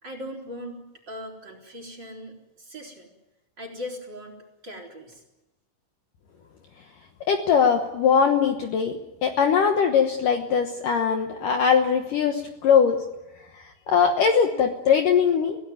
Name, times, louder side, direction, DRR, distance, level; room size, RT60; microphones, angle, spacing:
voice 1, 0.0-3.1 3.6-4.3 4.6-5.2, left 1 dB, 25° right, 4 dB, 3.9 m, -39 dB
voice 2, 7.3-8.9 9.2-13.0 13.6-15.6, left 6 dB, 85° left, 4 dB, 1.8 m, -21 dB
25.0 x 17.5 x 9.3 m, 0.99 s
omnidirectional pair, 5.9 m